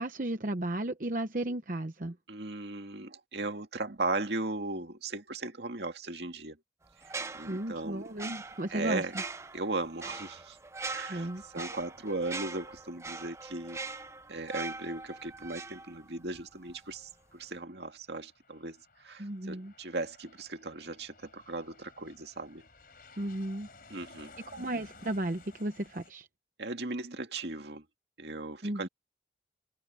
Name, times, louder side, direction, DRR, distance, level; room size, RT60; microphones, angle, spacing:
voice 1, 0.0-2.1 7.5-9.0 11.1-11.4 19.2-19.7 23.2-23.7 24.5-26.3 28.6-28.9, right 1 dB, 45° right, 0.9 m, -34 dB
voice 2, 2.3-6.6 7.0-8.1 8.7-9.1 9.5-10.6 10.9-13.8 14.3-22.6 23.9-24.3 26.6-27.8 28.2-28.9, right 2 dB, 75° right, 2.2 m, -37 dB
sound 1, 7.0-16.4 16.7-16.9, right 3 dB, 15° right, 0.7 m, -42 dB
Aircraft, 15.9-26.1, left 3 dB, 55° left, 4.7 m, -57 dB
open air
head